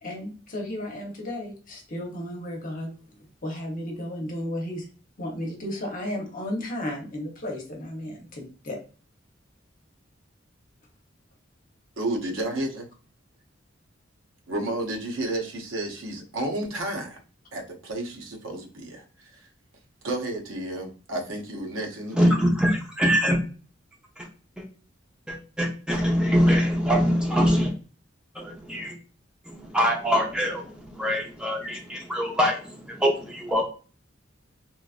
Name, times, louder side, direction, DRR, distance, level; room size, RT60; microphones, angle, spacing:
voice 1, 0.0-4.9 5.2-8.8, left 1 dB, 45° left, 1 dB, 0.9 m, -34 dB
voice 2, 12.0-12.9 14.5-17.2 17.5-19.5 20.0-22.4, right 1 dB, 90° right, 1 dB, 0.8 m, -31 dB
voice 3, 22.1-23.4 24.2-24.3 24.6-24.7 25.3-27.7 28.3-28.9 29.5-33.6, equal, 5° right, -1 dB, 0.8 m, -23 dB
3.0 x 2.4 x 2.4 m, 0.36 s
head